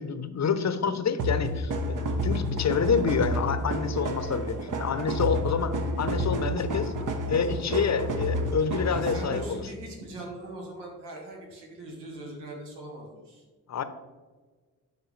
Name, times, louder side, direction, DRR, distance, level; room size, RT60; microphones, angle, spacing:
voice 1, 0.0-1.9 2.2-6.9 7.3-9.6 13.7-13.8, left 6 dB, 40° left, 11 dB, 0.9 m, -28 dB
sound 1, 1.2-9.6, equal, 45° right, 1.1 m, -30 dB
voice 2, 8.9-13.4, right 1 dB, 75° right, -1 dB, 2.0 m, -41 dB
11.5 x 4.5 x 3.3 m, 1.4 s
hypercardioid pair, 40°, 42 cm